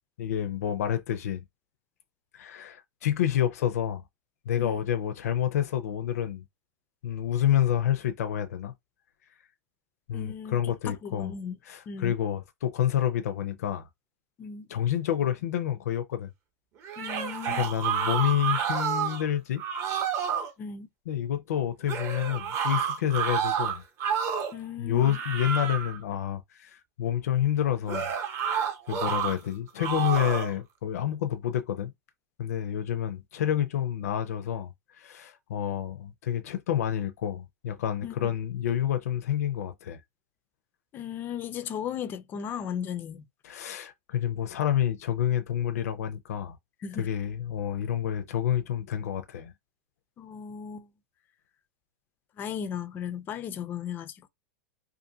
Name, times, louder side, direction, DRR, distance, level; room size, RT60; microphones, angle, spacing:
voice 1, 0.2-1.4 2.3-4.0 4.5-6.4 7.0-8.7 10.1-11.3 11.7-13.9 14.7-16.3 17.5-19.6 21.1-23.8 24.8-28.1 28.9-31.9 32.4-40.0 43.4-46.6 47.0-49.5, left 10 dB, 75° left, 0.5 m, -28 dB
voice 2, 10.1-10.6 10.8-11.5 11.9-12.1 14.4-14.7 17.0-17.7 20.6-20.9 24.5-25.2 38.0-38.3 40.9-43.3 46.8-47.1 50.2-50.9 52.4-54.3, left 8 dB, 25° left, 0.3 m, -36 dB
sound 1, 16.8-19.3 19.6-20.5 21.9-24.6 25.0-26.0 27.9-29.4 29.8-30.5, right 8 dB, 30° right, 0.7 m, -29 dB
2.5 x 2.5 x 2.7 m
supercardioid pair, 140°, 8 cm